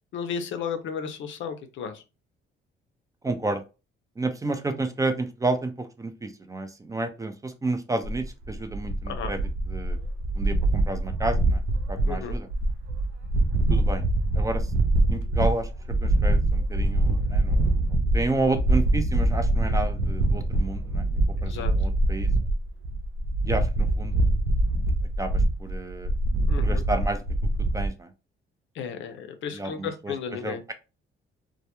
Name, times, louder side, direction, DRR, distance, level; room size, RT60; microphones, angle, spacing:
voice 1, 0.1-2.0 9.0-9.3 12.1-12.4 21.4-21.7 26.5-26.8 28.7-30.6, left 7 dB, 75° left, 8 dB, 0.5 m, -34 dB
voice 2, 3.2-3.6 4.2-9.4 9.7-10.0 10.4-11.6 11.9-12.5 13.7-14.0 14.4-14.7 15.1-15.7 16.0-17.8 18.1-22.3 23.5-24.1 25.2-26.1 26.6-27.2 27.7-28.1 29.5-30.1 30.4-30.7, right 2 dB, 15° right, 8 dB, 0.4 m, -31 dB
sound 1, 8.0-27.9, right 1 dB, 90° right, 0.4 m, -24 dB
2.2 x 2.1 x 2.8 m, 0.30 s
cardioid pair, 90°, 20 cm